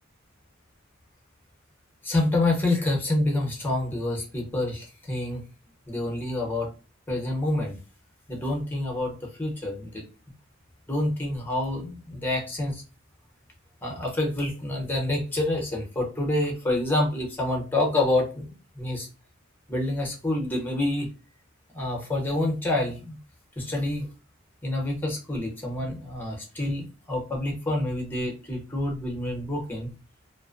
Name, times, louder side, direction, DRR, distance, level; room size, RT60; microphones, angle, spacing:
voice 1, 2.0-5.4 5.9-6.7 7.1-7.8 8.3-10.1 10.9-12.8 13.8-19.1 19.7-21.1 21.7-23.2 23.6-24.1 24.6-29.9, left 2 dB, 10° left, 0 dB, 0.7 m, -27 dB
2.4 x 2.1 x 2.4 m, 0.33 s
head